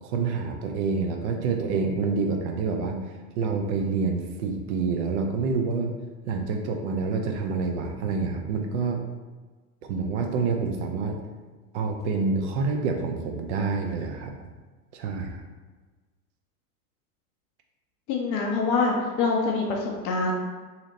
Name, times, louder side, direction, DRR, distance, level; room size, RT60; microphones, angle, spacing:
voice 1, 0.0-5.9 6.3-9.0 9.8-11.2 11.7-14.5 14.9-15.4, right 4 dB, 45° right, 3 dB, 0.5 m, -27 dB
voice 2, 18.1-20.3, left 4 dB, 30° left, 0 dB, 0.5 m, -25 dB
2.8 x 2.8 x 4.0 m, 1.3 s
figure-of-eight pair, 80°, 49 cm